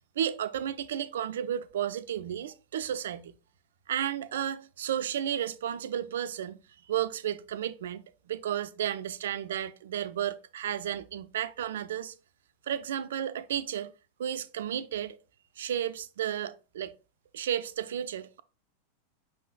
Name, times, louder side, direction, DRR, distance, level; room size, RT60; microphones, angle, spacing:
voice 1, 0.2-3.3 3.9-6.6 6.9-12.1 12.7-13.9 14.2-15.2 15.6-16.9 17.3-18.4, right 10 dB, 60° right, 0.3 m, -33 dB
5.2 x 3.8 x 2.4 m
figure-of-eight pair, 90°, 0 cm